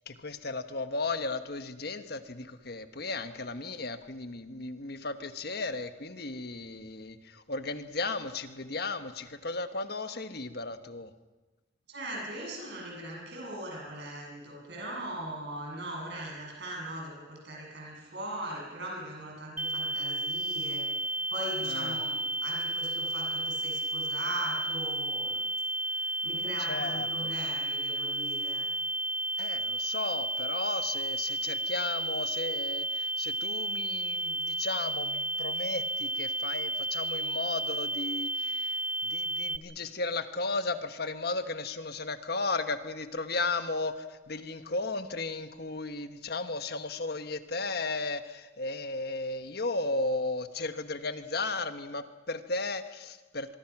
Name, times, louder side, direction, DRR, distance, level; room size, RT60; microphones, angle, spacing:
voice 1, 0.1-11.1 21.7-22.0 26.7-27.3 29.4-53.6, left 3 dB, 55° left, 9 dB, 1.3 m, -35 dB
voice 2, 11.9-25.4 25.8-28.7, right 1 dB, 60° right, -1 dB, 7.7 m, -40 dB
sound 1, 19.6-39.6, right 1 dB, 10° right, 0.8 m, -32 dB
24.0 x 23.0 x 6.1 m, 1.1 s
head